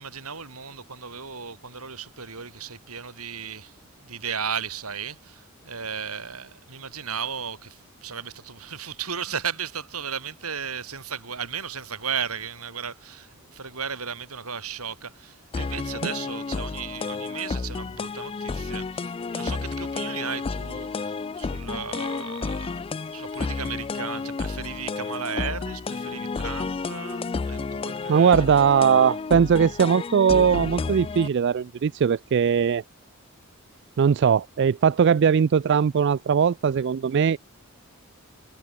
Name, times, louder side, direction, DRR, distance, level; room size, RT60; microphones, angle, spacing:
voice 1, 0.0-3.8 4.0-28.4, right 7 dB, 85° right, 4.8 m, -35 dB
sound 1, 15.5-31.3, left 4 dB, 25° left, 0.3 m, -31 dB
voice 2, 28.1-32.8 34.0-37.4, right 7 dB, 55° right, 0.3 m, -20 dB
head